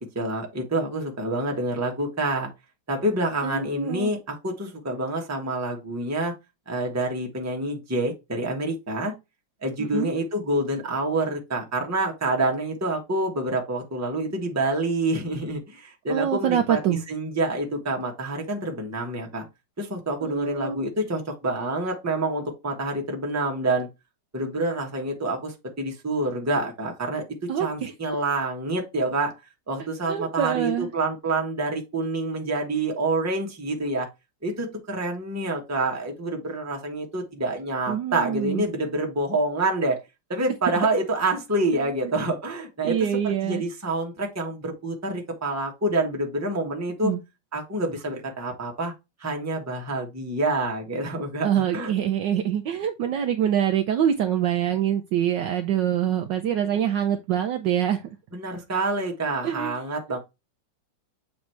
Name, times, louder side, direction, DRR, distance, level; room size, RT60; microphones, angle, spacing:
voice 1, 0.0-2.5 2.9-4.2 4.4-6.3 6.7-9.1 9.6-19.4 19.8-23.9 24.3-27.2 27.6-29.3 29.7-34.1 34.4-40.0 40.3-43.0 43.4-47.1 47.5-48.9 49.2-51.5 51.7-51.9 58.3-60.2, right 2 dB, 10° right, 1.0 m, -27 dB
voice 2, 3.4-4.1 9.8-10.1 16.1-17.0 20.2-20.8 27.5-27.9 30.1-30.9 37.9-38.6 42.8-43.6 47.0-47.2 51.4-58.0 59.4-59.8, right 9 dB, 70° right, 1.1 m, -25 dB
7.3 x 3.2 x 4.4 m
omnidirectional pair, 2.3 m